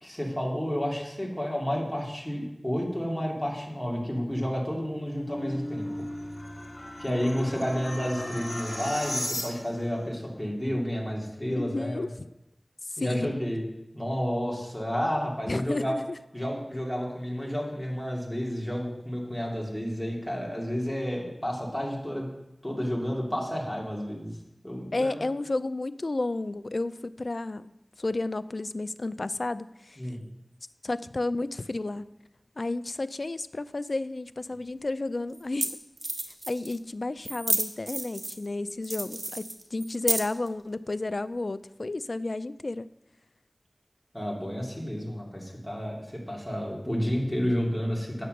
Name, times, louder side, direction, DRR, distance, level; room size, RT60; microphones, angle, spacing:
voice 1, 0.0-6.0 7.0-12.1 13.0-13.6 13.9-16.0 16.3-22.3 22.6-24.3 24.6-25.2 30.0-30.2 44.1-48.3, equal, 10° left, -2 dB, 2.6 m, -31 dB
sound 1, 4.7-9.9, left 1 dB, 40° left, 1.5 m, -36 dB
voice 2, 11.5-12.1 12.9-13.3 15.5-16.2 24.9-27.7 28.0-30.0 30.8-32.1 32.6-35.8 36.5-42.9, left 2 dB, 65° left, 14 dB, 0.4 m, -32 dB
sound 2, 34.5-34.6 35.3-35.4 35.6-35.7 36.0-36.8 37.2-38.5 38.8-40.5, right 2 dB, 55° right, 1.2 m, -30 dB
9.3 x 6.5 x 6.5 m, 0.89 s
wide cardioid pair, 55°, 0 cm